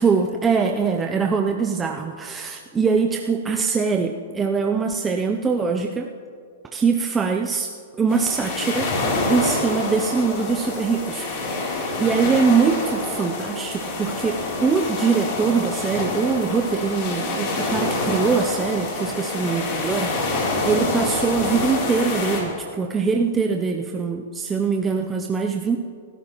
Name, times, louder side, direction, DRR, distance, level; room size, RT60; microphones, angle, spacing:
voice 1, 0.0-6.1 6.7-7.7 8.0-8.9 9.3-11.3 11.5-25.8, right 5 dB, 10° right, 2 dB, 0.5 m, -23 dB
sound 1, 8.1-22.4, left 2 dB, 40° left, 3.3 m, -26 dB
26.0 x 13.5 x 3.0 m, 2.2 s
hypercardioid pair, 160°, 0 cm